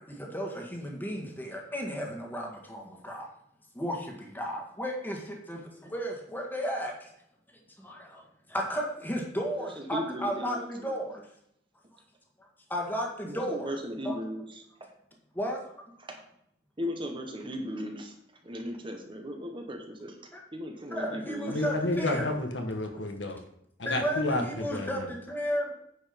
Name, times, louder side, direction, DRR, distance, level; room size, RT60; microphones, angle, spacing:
voice 1, 0.0-3.3 3.7-7.1 7.8-8.2 8.5-11.2 12.7-13.8 14.0-14.2 15.3-15.6 20.3-20.4 20.9-22.3 23.8-25.7, equal, 10° left, 0 dB, 1.8 m, -34 dB
voice 2, 9.5-10.9 13.2-14.6 16.0-16.2 16.8-18.1 18.4-20.2 20.5-21.5, equal, 30° right, 3 dB, 1.3 m, -37 dB
voice 3, 21.5-23.4 23.8-25.1, left 2 dB, 70° left, 4 dB, 1.4 m, -30 dB
9.6 x 5.3 x 5.3 m, 0.74 s
head